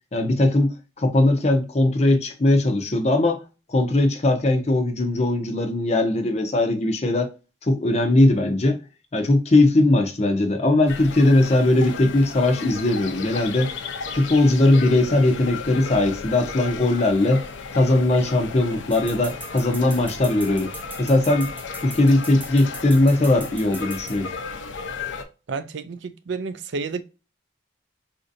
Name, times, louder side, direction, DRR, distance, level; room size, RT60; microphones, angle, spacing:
voice 1, 0.1-3.4 3.7-7.3 7.6-8.8 9.1-13.7 14.1-17.4 17.7-20.7 21.0-21.5 21.8-24.3, left 2 dB, 35° left, 0.6 m, -19 dB
sound 1, 10.9-25.2, left 5 dB, 75° left, 0.6 m, -35 dB
sound 2, 18.9-24.2, right 1 dB, 10° right, 0.8 m, -39 dB
voice 2, 25.5-27.0, right 4 dB, 65° right, 0.4 m, -30 dB
4.2 x 2.6 x 2.5 m
head